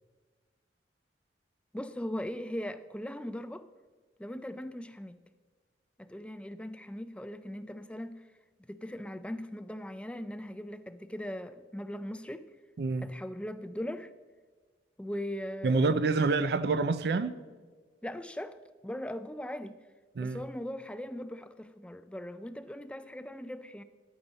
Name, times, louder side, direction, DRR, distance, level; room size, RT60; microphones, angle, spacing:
voice 1, 1.7-3.7 4.2-5.2 6.0-8.3 8.7-12.5 13.0-14.1 15.0-15.8 18.0-18.6 18.8-19.8 20.2-23.8, equal, 5° left, 0.4 m, -39 dB
voice 2, 15.6-17.3 20.2-20.4, right 3 dB, 60° right, 0.4 m, -27 dB
11.0 x 8.9 x 4.0 m
head